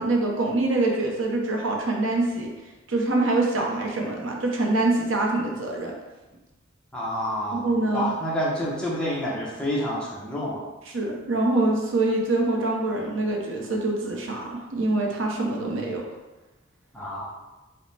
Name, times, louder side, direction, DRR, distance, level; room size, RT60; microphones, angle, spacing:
voice 1, 0.0-2.5 2.9-5.9 7.5-8.1 10.9-16.0, right 2 dB, 85° right, 0 dB, 0.7 m, -25 dB
voice 2, 6.9-7.7 7.9-10.6 16.9-17.3, equal, 5° left, -6 dB, 0.7 m, -28 dB
4.9 x 2.1 x 3.3 m, 1.1 s
head